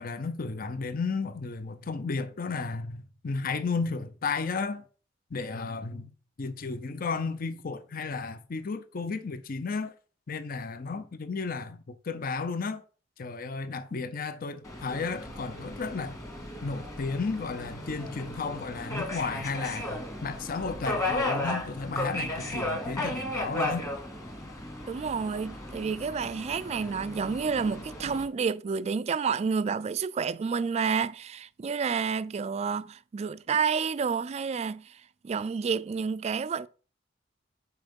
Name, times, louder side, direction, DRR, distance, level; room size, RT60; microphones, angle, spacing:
voice 1, 0.0-4.8 5.3-6.1 6.4-9.9 10.3-12.8 13.2-16.2 16.6-23.9, left 4 dB, 50° left, 0.6 m, -33 dB
Subway metro underground, 14.6-28.2, left 1 dB, 20° left, 1.8 m, -35 dB
voice 2, 24.9-36.7, right 5 dB, 35° right, 0.3 m, -30 dB
5.8 x 4.6 x 5.2 m
head